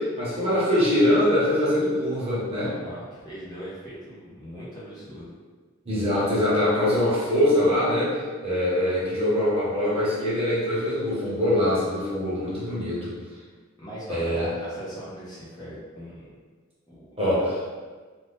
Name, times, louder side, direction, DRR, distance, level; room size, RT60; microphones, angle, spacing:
voice 1, 0.0-2.7 5.8-13.1 14.1-14.5 17.2-17.6, left 1 dB, 30° right, -9 dB, 1.0 m, -23 dB
voice 2, 2.6-5.3 13.8-16.3 16.9-17.1, equal, 20° left, -10 dB, 0.8 m, -39 dB
2.6 x 2.4 x 3.4 m, 1.4 s
head